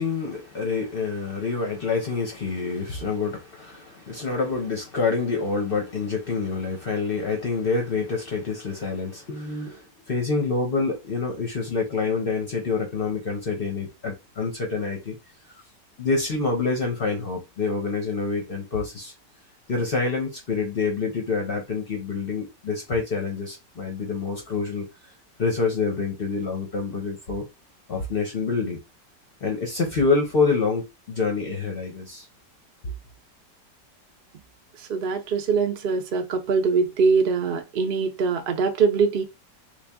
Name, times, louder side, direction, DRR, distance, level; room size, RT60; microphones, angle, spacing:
voice 1, 0.0-15.1 16.0-19.1 19.7-24.8 25.4-27.4 27.9-28.8 29.4-32.3 32.8-32.9, left 4 dB, 50° left, 0.7 m, -27 dB
voice 2, 34.9-39.2, right 5 dB, 70° right, 0.5 m, -23 dB
3.3 x 2.4 x 3.4 m
omnidirectional pair, 1.9 m